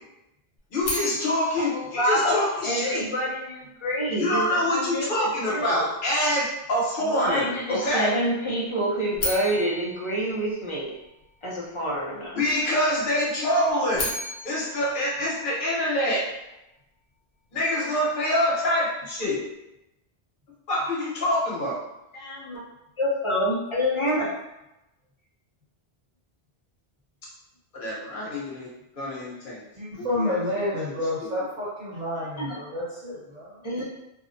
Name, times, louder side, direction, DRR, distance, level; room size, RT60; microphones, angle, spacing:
voice 1, 0.7-3.0 4.2-8.1 12.3-14.1 14.4-16.2 17.5-19.4 20.7-21.8 27.7-28.7 29.0-29.7 30.0-30.4 31.2-31.3, left 1 dB, 55° left, -5 dB, 1.0 m, -25 dB
sound 1, 0.8-3.0 9.1-11.3 13.7-16.1, left 1 dB, 85° left, 1.0 m, -35 dB
voice 2, 1.7-2.3 2.6-5.8 7.0-11.0 11.4-12.4 22.1-22.6 23.0-24.3 32.4-32.6 33.6-33.8, equal, 40° left, -5 dB, 0.4 m, -27 dB
voice 3, 29.7-33.6, left 1 dB, 50° right, -10 dB, 1.0 m, -30 dB
2.6 x 2.0 x 2.5 m, 0.91 s
omnidirectional pair, 1.1 m